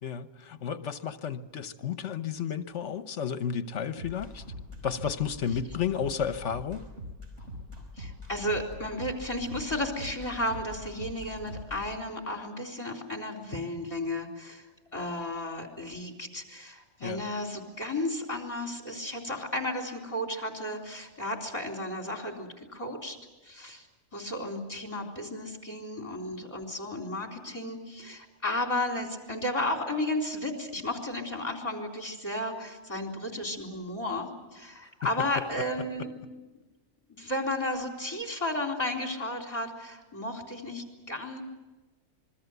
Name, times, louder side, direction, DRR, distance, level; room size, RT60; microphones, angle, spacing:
voice 1, 0.0-4.4 4.8-6.9 17.0-17.2, left 8 dB, 65° left, 11 dB, 1.3 m, -32 dB
sound 1, 4.0-11.8, left 1 dB, 65° right, 5.5 m, -42 dB
voice 2, 8.0-23.2 23.4-23.9 24.1-36.1 37.1-41.4, left 1 dB, 25° left, 2 dB, 4.1 m, -33 dB
26.5 x 22.0 x 8.1 m, 1.1 s
omnidirectional pair, 1.3 m